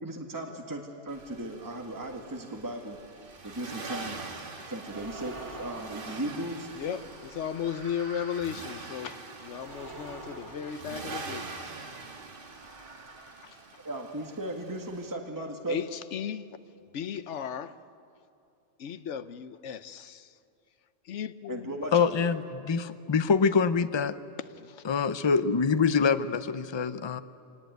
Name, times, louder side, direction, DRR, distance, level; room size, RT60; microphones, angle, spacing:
voice 1, 0.0-3.0 3.4-4.2 4.7-6.7 13.8-15.8 21.5-22.3, right 1 dB, 15° right, 2 dB, 1.7 m, -36 dB
Accelerating revving vroom, 1.1-15.1, right 3 dB, 50° right, 1.7 m, -44 dB
sound 1, 4.8-11.6 12.2-14.1, right 2 dB, 80° right, 2.5 m, -47 dB
voice 2, 6.8-11.5 13.4-13.6 15.7-16.5 16.9-17.8 18.8-20.3 21.0-21.8 24.6-24.8, left 8 dB, 80° left, 13 dB, 1.1 m, -36 dB
voice 3, 21.9-22.4 22.7-24.1 24.8-27.2, left 5 dB, 30° left, 13 dB, 0.5 m, -25 dB
24.5 x 18.5 x 9.3 m, 2.6 s
omnidirectional pair, 1.2 m